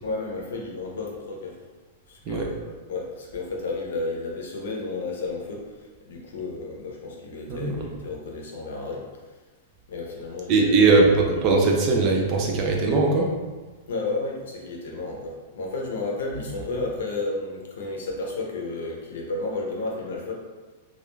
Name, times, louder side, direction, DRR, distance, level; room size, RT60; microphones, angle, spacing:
voice 1, 0.0-1.6 2.1-2.6 2.9-9.1 9.9-10.7 11.3-11.4 13.9-20.3, left 3 dB, 85° left, -1 dB, 0.6 m, -32 dB
voice 2, 7.5-7.9 10.5-13.3, right 3 dB, 30° right, 0 dB, 0.4 m, -20 dB
2.3 x 2.1 x 3.1 m, 1.3 s
supercardioid pair, 170°, 0 cm